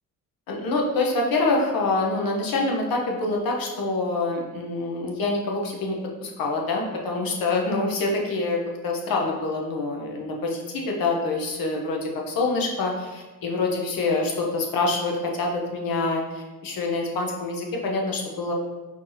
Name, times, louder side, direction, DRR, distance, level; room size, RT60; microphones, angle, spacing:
voice 1, 0.5-18.5, left 3 dB, 80° left, 0 dB, 0.9 m, -26 dB
4.6 x 2.8 x 3.9 m, 1.2 s
wide cardioid pair, 175°, 34 cm